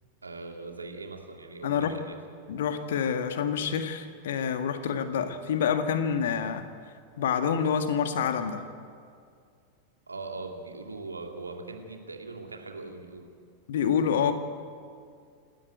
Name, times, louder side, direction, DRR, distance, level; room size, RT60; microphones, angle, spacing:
voice 1, 0.2-2.2 10.1-13.3, right 3 dB, 80° right, 3 dB, 2.3 m, -40 dB
voice 2, 1.6-1.9 2.5-6.6 7.2-8.6 13.7-14.3, left 7 dB, 60° left, 8 dB, 1.7 m, -27 dB
27.5 x 13.0 x 9.1 m, 2.2 s
figure-of-eight pair, 90°, 0 cm